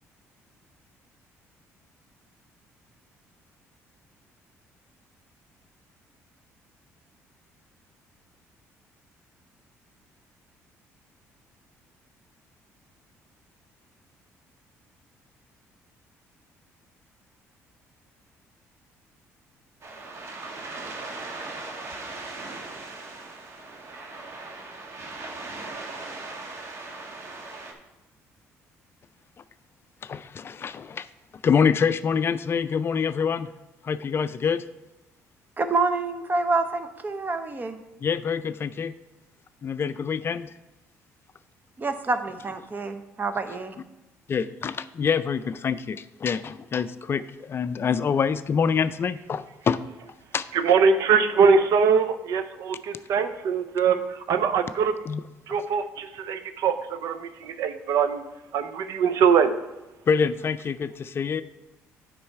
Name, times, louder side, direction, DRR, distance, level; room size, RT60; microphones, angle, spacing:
sound 1, 19.8-27.7, right 3 dB, 50° right, 1.4 m, -38 dB
voice 1, 30.0-31.1 31.4-33.5 33.8-34.6 38.0-38.9 39.6-40.5 44.3-49.8 50.3-50.5 55.1-55.2 55.5-55.6 60.1-61.4, left 6 dB, 40° left, 13 dB, 0.4 m, -26 dB
voice 2, 35.6-37.8 41.8-43.7, right 3 dB, 30° right, 9 dB, 0.9 m, -27 dB
voice 3, 50.5-54.9 55.5-58.2 58.5-59.5, right 6 dB, 75° right, 9 dB, 0.6 m, -22 dB
8.6 x 5.5 x 4.7 m, 0.98 s
cardioid pair, 80°, 6 cm